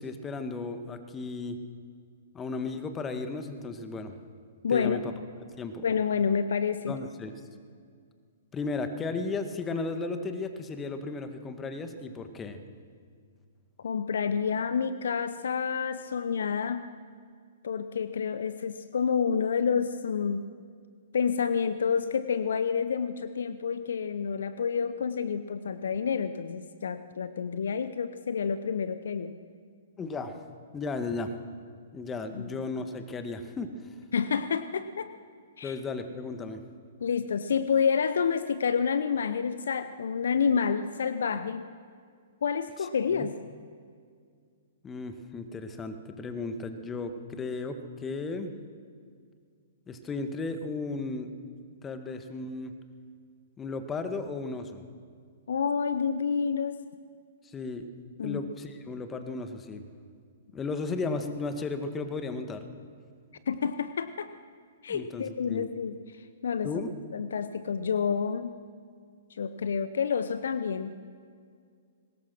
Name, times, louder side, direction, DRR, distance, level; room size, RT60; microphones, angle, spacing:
voice 1, 0.0-1.6 2.3-4.2 4.7-5.1 5.6-5.9 6.9-7.3 8.5-12.6 30.0-30.4 30.7-31.3 31.9-33.9 35.6-36.6 42.8-42.9 43.1-43.3 44.8-48.5 49.9-51.3 51.8-52.7 53.6-54.8 57.4-57.9 58.2-59.8 60.5-62.6 64.9-65.7 66.6-66.9, left 3 dB, 15° left, 8 dB, 1.7 m, -35 dB
voice 2, 4.6-5.0 5.8-6.9 13.8-16.9 17.6-20.4 21.1-29.3 32.4-32.5 34.1-35.1 35.6-35.8 37.0-41.6 42.4-43.3 55.5-56.8 58.2-58.4 63.5-64.3 64.8-66.0 66.4-66.7 67.1-68.5 69.4-70.9, left 6 dB, 65° left, 13 dB, 0.7 m, -28 dB
23.0 x 20.0 x 6.2 m, 2.1 s
figure-of-eight pair, 115°, 0 cm